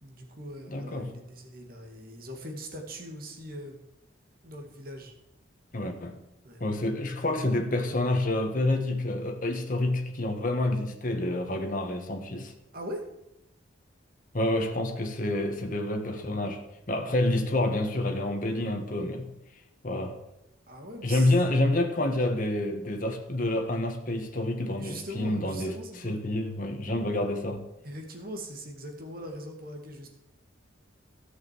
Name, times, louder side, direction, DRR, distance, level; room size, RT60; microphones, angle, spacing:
voice 1, 0.0-3.8 4.4-5.1 6.4-6.6 12.7-13.0 17.1-17.5 20.7-21.3 24.8-26.1 27.8-30.1, equal, 45° right, 2.3 m, -41 dB
voice 2, 0.7-1.1 5.7-6.2 6.6-12.5 14.3-16.6 16.9-19.3 19.8-20.2 21.0-25.7 26.0-27.7, left 1 dB, 40° left, 1.3 m, -28 dB
13.5 x 6.6 x 7.6 m
head